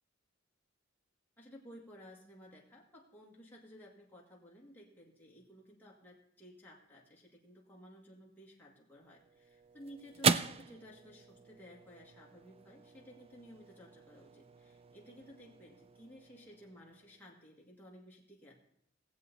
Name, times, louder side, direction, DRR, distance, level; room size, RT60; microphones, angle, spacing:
voice 1, 1.4-18.5, equal, 10° left, -4 dB, 1.9 m, -55 dB
sound 1, 8.9-17.5, right 6 dB, 30° right, 0.3 m, -39 dB
18.5 x 7.7 x 4.1 m, 0.72 s
head